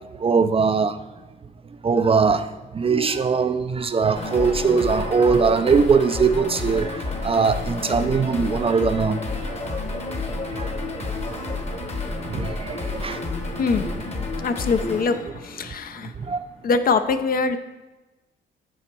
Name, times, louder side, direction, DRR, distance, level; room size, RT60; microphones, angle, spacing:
voice 1, 0.2-1.0 1.8-9.8 10.5-10.7 11.7-11.8 12.3-13.2 16.2-16.4, right 5 dB, 30° right, 0.4 m, -21 dB
sound 1, 4.1-16.2, left 3 dB, 30° left, 1.1 m, -30 dB
voice 2, 14.4-16.1 16.6-17.6, left 4 dB, 45° left, 0.6 m, -23 dB
6.9 x 4.3 x 6.0 m
cardioid pair, 90°, 20 cm